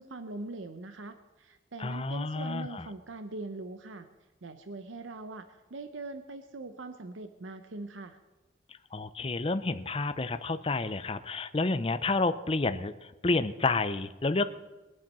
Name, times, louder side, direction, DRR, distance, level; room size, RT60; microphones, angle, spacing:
voice 1, 0.0-4.1 4.4-8.2, right 2 dB, 90° right, 9 dB, 0.8 m, -42 dB
voice 2, 1.8-2.9 8.9-14.5, left 3 dB, 30° left, 11 dB, 0.6 m, -30 dB
22.5 x 7.5 x 5.5 m, 1.2 s
head